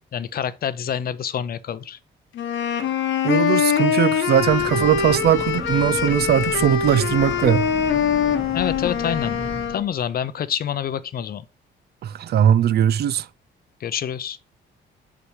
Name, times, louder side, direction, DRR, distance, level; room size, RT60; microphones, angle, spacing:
voice 1, 0.0-2.0 8.5-9.4 9.7-11.4 13.8-14.4, left 9 dB, 50° left, 0.5 m, -27 dB
sound 1, 2.3-9.8, left 8 dB, 70° left, 1.0 m, -23 dB
voice 2, 3.2-7.7 12.0-13.3, right 10 dB, 55° right, 0.4 m, -19 dB
Breathing / Train, 4.2-9.9, equal, ahead, 0.9 m, -35 dB
6.0 x 5.5 x 3.1 m
cardioid pair, 90°, 20 cm